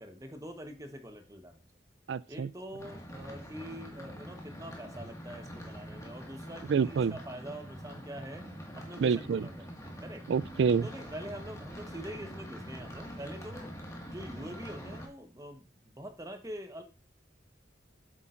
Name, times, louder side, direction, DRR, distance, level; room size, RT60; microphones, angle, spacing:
voice 1, 0.0-1.6 2.3-8.5 8.8-10.2 10.8-13.7 14.1-16.8, equal, 20° right, 1.1 m, -44 dB
voice 2, 2.1-2.5 6.7-7.1 9.0-9.5 10.3-10.9, right 6 dB, 70° right, 0.3 m, -27 dB
sound 1, 2.8-15.1, equal, 15° left, 1.7 m, -45 dB
8.5 x 7.3 x 2.5 m
head